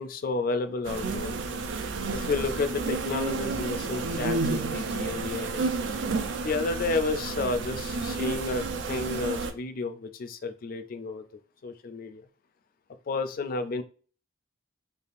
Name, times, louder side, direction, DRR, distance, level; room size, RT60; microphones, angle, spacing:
voice 1, 0.0-1.4 2.1-5.6 6.4-11.2 11.6-12.2 13.1-13.8, left 3 dB, 50° left, 0.3 m, -31 dB
sound 1, 0.8-9.5, right 3 dB, 70° right, 0.4 m, -31 dB
3.3 x 2.3 x 2.5 m
head